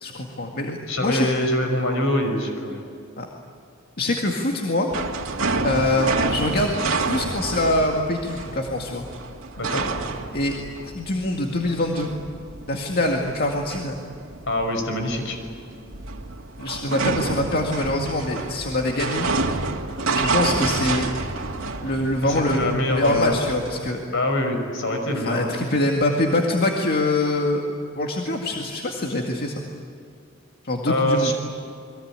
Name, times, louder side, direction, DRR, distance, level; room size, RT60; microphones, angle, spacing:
voice 1, 0.0-1.3 3.2-3.3 4.0-4.9 5.6-9.1 10.3-10.6 10.8-12.1 12.7-14.0 16.6-19.3 20.1-21.1 21.8-24.0 25.2-27.6 28.0-29.6 30.6-31.3, left 1 dB, 50° left, 1 dB, 2.1 m, -24 dB
voice 2, 0.9-2.8 9.6-9.9 14.5-15.4 22.2-23.4 24.1-25.5 30.9-31.3, left 1 dB, 70° left, 5 dB, 5.8 m, -24 dB
sound 1, 4.9-23.9, right 3 dB, 75° right, 2.3 m, -29 dB
29.5 x 22.5 x 8.9 m, 2.4 s
head